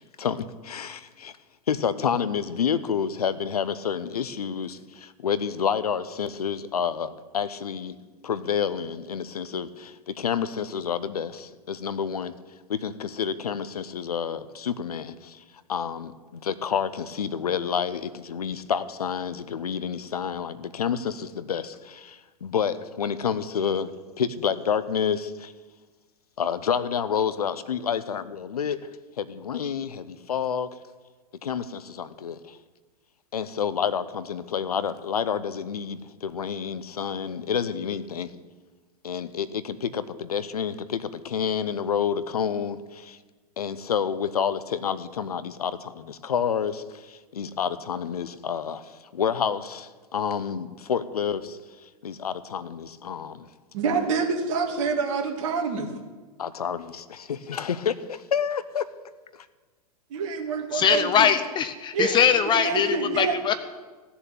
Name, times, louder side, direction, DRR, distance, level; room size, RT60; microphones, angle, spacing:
voice 1, 0.2-1.3 1.7-8.0 8.2-12.3 12.7-15.4 15.7-23.9 24.2-25.5 26.4-28.8 29.2-30.7 31.4-32.6 33.3-38.3 39.0-43.2 43.6-51.6 52.0-53.5 56.4-58.8, left 7 dB, 70° left, 0.9 m, -29 dB
voice 2, 53.7-55.9 60.1-61.3 61.9-63.4, right 5 dB, 50° right, 2.5 m, -27 dB
voice 3, 60.7-62.9 63.2-63.5, left 8 dB, 25° left, 0.7 m, -21 dB
16.0 x 7.1 x 9.3 m
figure-of-eight pair, 100°, 20 cm